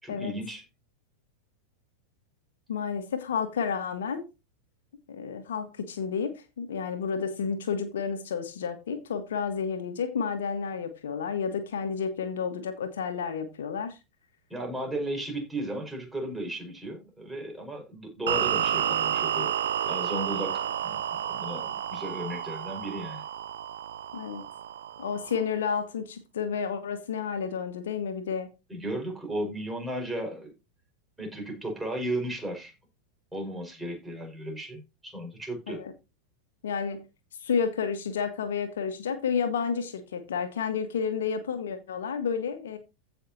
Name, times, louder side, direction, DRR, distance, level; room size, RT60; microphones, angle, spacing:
voice 1, 0.0-0.6 14.5-19.5 19.9-23.2 28.7-30.5 31.2-32.7 33.3-35.8, right 1 dB, 5° right, 5.2 m, -35 dB
voice 2, 2.7-4.2 5.1-14.0 24.1-24.4 25.0-28.5 35.7-35.9 36.6-37.0 37.4-42.8, left 6 dB, 60° left, 1.5 m, -31 dB
sound 1, 18.3-25.4, right 10 dB, 60° right, 0.6 m, -31 dB
15.5 x 5.9 x 2.8 m
figure-of-eight pair, 90°, 0 cm